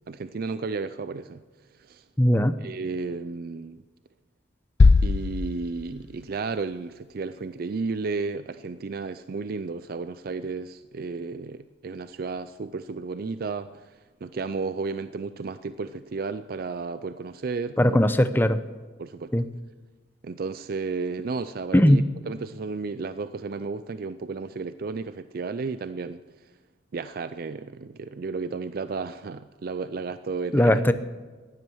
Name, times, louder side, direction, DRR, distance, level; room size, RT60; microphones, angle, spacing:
voice 1, 0.1-1.4 1.8-2.0 2.6-3.8 5.0-18.0 19.0-19.3 20.2-26.2 26.9-30.8, right 4 dB, 50° right, 12 dB, 0.4 m, -33 dB
voice 2, 2.2-2.6 17.8-18.6 19.3-19.4 21.7-22.0 30.5-30.9, left 1 dB, 10° left, 11 dB, 0.6 m, -19 dB
sound 1, 4.8-6.6, left 3 dB, 60° left, 0.5 m, -21 dB
15.5 x 11.0 x 6.2 m, 1.4 s
head